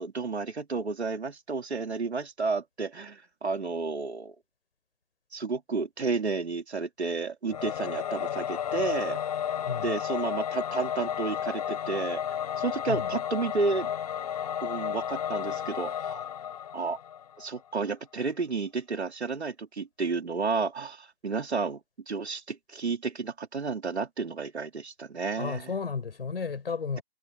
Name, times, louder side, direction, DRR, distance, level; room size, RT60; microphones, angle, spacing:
voice 1, 0.0-4.3 5.3-9.2 9.8-12.2 12.6-13.9 14.6-16.3 16.7-17.0 17.4-21.8 22.1-25.7, right 4 dB, 80° right, 2.9 m, -31 dB
Singing / Musical instrument, 7.5-17.5, left 9 dB, 35° left, 4.5 m, -33 dB
voice 2, 25.4-27.0, left 5 dB, 65° left, 6.9 m, -33 dB
hypercardioid pair, 165°, 32 cm